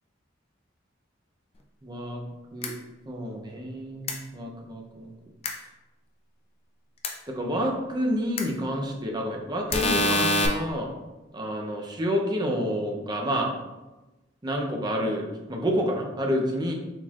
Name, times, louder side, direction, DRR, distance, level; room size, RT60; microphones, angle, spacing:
voice 1, 1.8-2.2 2.5-2.7 3.1-5.1 7.3-11.0 11.3-13.5 14.4-16.7, equal, 20° right, 0 dB, 0.6 m, -29 dB
sound 1, 2.6-2.7 4.1-4.2 5.4-5.5 7.0-7.1 8.4-8.5 9.7-10.5, left 2 dB, 30° left, 0.5 m, -24 dB
4.3 x 4.1 x 2.4 m, 1.1 s
head